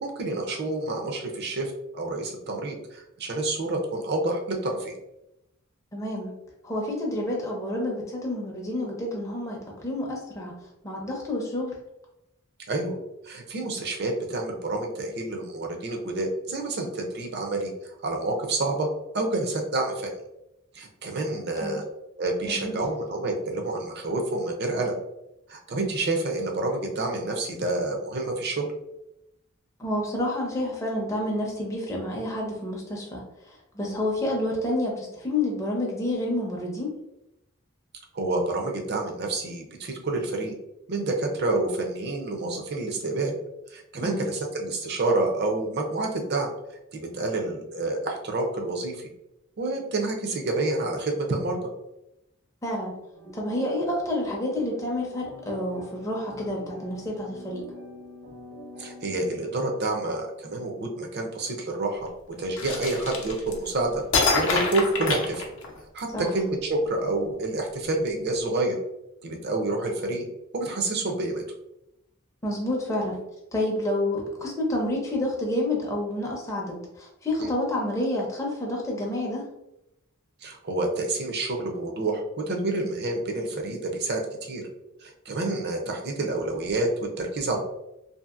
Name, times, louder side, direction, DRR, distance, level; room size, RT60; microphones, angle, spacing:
voice 1, 0.0-4.9 12.7-13.0 13.2-17.7 18.0-18.9 19.1-20.1 20.7-21.8 22.2-24.9 25.5-28.7 33.8-34.0 38.1-40.5 40.9-43.4 43.7-46.5 46.9-49.1 49.6-51.6 58.8-64.0 64.3-65.5 65.9-68.8 69.2-70.3 70.5-71.4 77.4-77.5 80.4-84.6 85.0-87.6, right 2 dB, 50° right, 2 dB, 0.5 m, -28 dB
voice 2, 5.9-6.3 6.6-10.6 10.8-11.8 21.6-21.8 22.4-22.8 29.8-36.9 44.0-44.3 52.6-53.0 53.3-57.6 66.1-66.3 72.4-73.2 73.5-79.5, left 1 dB, 15° left, -2 dB, 0.5 m, -29 dB
sound 1, 53.1-59.8, left 1 dB, 80° right, 1.1 m, -45 dB
sound 2, 62.6-63.7 64.1-66.0, left 3 dB, 60° left, 0.6 m, -25 dB
2.7 x 2.5 x 2.4 m, 0.86 s
head